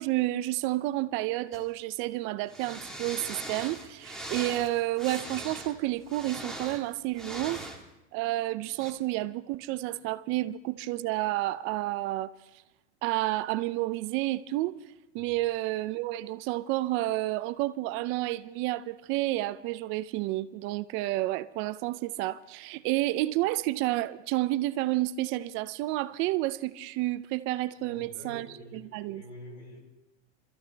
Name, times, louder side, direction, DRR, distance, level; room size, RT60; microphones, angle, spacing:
voice 1, 0.0-7.6 8.1-12.3 13.0-14.8 15.1-29.2, right 17 dB, 35° right, 0.5 m, -30 dB
sound 1, 1.5-1.6 2.5-7.8 8.8-8.9, right 1 dB, ahead, 1.8 m, -40 dB
voice 2, 27.8-29.8, equal, 80° left, 7.7 m, -47 dB
25.5 x 14.0 x 3.4 m
hypercardioid pair, 125°, 35 cm